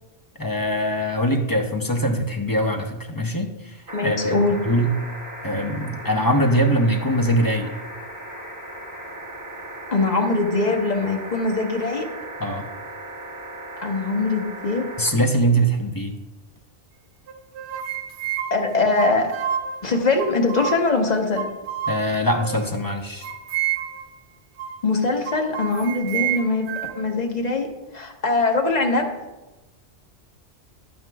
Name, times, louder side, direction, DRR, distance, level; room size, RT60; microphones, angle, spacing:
voice 1, 0.4-4.9 5.4-7.7 12.4-12.7 15.0-16.1 21.9-23.3, equal, 25° left, 3 dB, 0.5 m, -22 dB
voice 2, 3.9-4.6 9.9-12.1 13.8-14.9 18.5-19.3 19.8-21.4 24.8-26.7 26.9-27.7 27.9-29.1, left 3 dB, 40° left, 3 dB, 0.9 m, -22 dB
sound 1, 3.9-15.1 16.6-16.7, right 1 dB, 15° right, 1.2 m, -37 dB
sound 2, 17.3-19.8 20.2-21.0 21.3-22.7 23.2-24.1 24.6-24.8 25.2-27.1, right 9 dB, 60° right, 0.7 m, -29 dB
10.5 x 9.2 x 2.3 m, 1.1 s
omnidirectional pair, 1.2 m